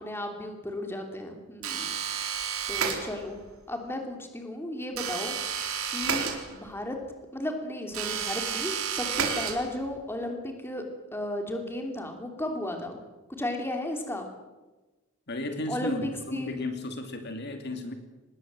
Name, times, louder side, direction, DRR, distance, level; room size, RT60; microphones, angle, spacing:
voice 1, 0.0-2.0 2.7-3.4 3.7-5.3 5.9-7.0 7.3-10.8 11.1-13.0 13.3-14.3 15.7-16.5, left 1 dB, 10° left, 4 dB, 3.0 m, -34 dB
sound 1, 1.6-3.4 4.9-6.9 7.9-10.0, right 7 dB, 80° right, 4.3 m, -31 dB
voice 2, 15.3-17.9, left 1 dB, 50° left, 6 dB, 2.6 m, -34 dB
25.5 x 20.5 x 7.7 m, 1.2 s
head